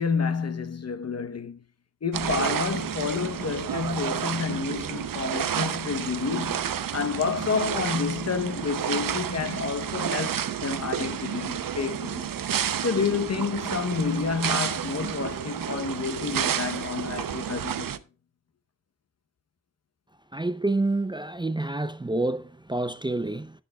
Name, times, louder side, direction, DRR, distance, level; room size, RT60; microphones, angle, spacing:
voice 1, 0.0-1.6 2.0-12.3 12.8-18.0, left 5 dB, 50° left, 1.0 m, -29 dB
sound 1, 2.1-18.0, right 9 dB, 90° right, 0.8 m, -30 dB
voice 2, 20.3-23.5, right 2 dB, 15° right, 0.5 m, -28 dB
10.5 x 10.0 x 2.3 m
wide cardioid pair, 90°, 33 cm